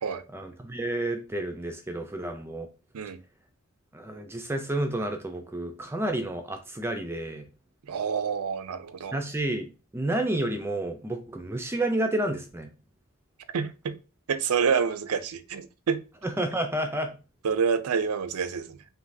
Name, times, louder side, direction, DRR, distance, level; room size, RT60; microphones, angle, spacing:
voice 1, 0.3-2.7 3.9-7.4 9.1-9.7 9.9-12.7 16.2-17.1, right 1 dB, 10° right, 0.4 m, -30 dB
voice 2, 7.9-9.2 13.5-14.0 14.3-16.0 17.4-18.8, right 6 dB, 85° right, 0.5 m, -28 dB
5.0 x 3.2 x 2.6 m
head